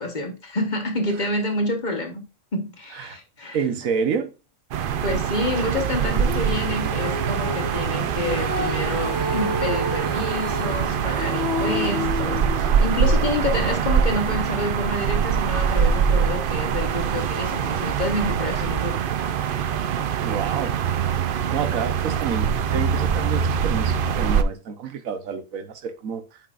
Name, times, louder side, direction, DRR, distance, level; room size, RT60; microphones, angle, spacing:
voice 1, 0.0-2.2 2.5-3.6 5.0-19.0, left 2 dB, 35° left, 1.2 m, -28 dB
voice 2, 3.5-4.3 20.2-20.8 21.5-26.4, right 6 dB, 90° right, 1.4 m, -29 dB
sound 1, 4.7-24.4, right 7 dB, 60° right, 0.6 m, -23 dB
Female singing, 6.2-12.7, left 3 dB, 55° left, 1.4 m, -31 dB
8.7 x 5.9 x 2.4 m
omnidirectional pair, 1.4 m